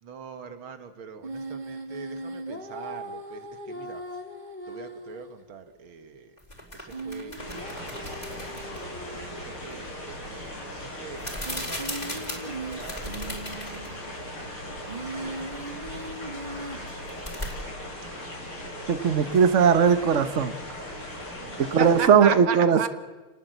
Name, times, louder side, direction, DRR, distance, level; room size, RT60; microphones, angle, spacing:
voice 1, 0.0-4.0 4.7-6.4 6.7-13.7 14.4-15.6 21.4-22.9, right 7 dB, 75° right, 8 dB, 2.3 m, -39 dB
sound 1, 1.2-5.4 6.9-9.6 10.4-10.5 11.3-14.0 14.9-16.9, right 2 dB, 20° right, 2.0 m, -39 dB
sound 2, 6.4-8.9 11.2-14.0 14.3-14.4 16.9-17.5, left 1 dB, 20° left, 4.4 m, -37 dB
sound 3, 7.4-22.1, left 1 dB, 80° left, 8.2 m, -38 dB
voice 2, 18.9-20.5 21.6-22.9, right 7 dB, 45° right, 10 dB, 1.1 m, -19 dB
28.5 x 19.5 x 8.0 m, 1.3 s
omnidirectional pair, 2.3 m